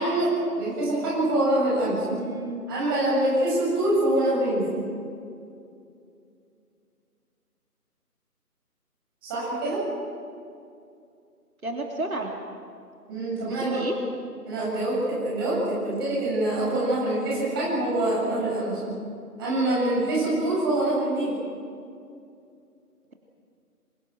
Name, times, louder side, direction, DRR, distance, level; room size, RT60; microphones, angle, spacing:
voice 1, 0.0-2.0 2.7-4.7 9.2-9.8 13.1-13.8 14.5-18.8 19.4-21.3, right 1 dB, 15° right, -6 dB, 7.7 m, -25 dB
voice 2, 2.1-2.7 11.6-12.3 13.5-14.0, right 2 dB, 65° right, 1 dB, 3.2 m, -31 dB
28.5 x 27.0 x 6.2 m, 2.5 s
figure-of-eight pair, 165°, 46 cm